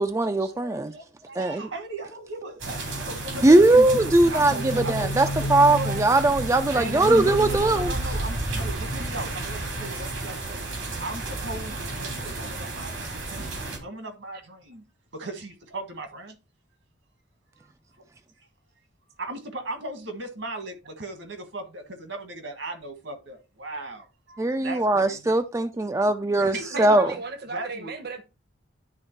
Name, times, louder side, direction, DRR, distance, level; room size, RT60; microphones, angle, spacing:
voice 1, 0.0-0.9 1.4-1.7 3.4-7.9 24.4-27.1, right 2 dB, 15° right, 0.4 m, -20 dB
voice 2, 0.5-3.9 4.3-5.1 5.4-5.5 6.7-14.8 15.1-16.4 17.6-17.7 18.4-18.5 19.2-25.3 26.4-27.2 27.5-27.9, right 2 dB, 75° right, 1.6 m, -38 dB
sound 1, 2.6-13.8, right 1 dB, 90° right, 2.9 m, -31 dB
voice 3, 5.7-6.1 26.5-28.2, right 3 dB, 55° right, 0.9 m, -35 dB
10.5 x 3.6 x 4.6 m
head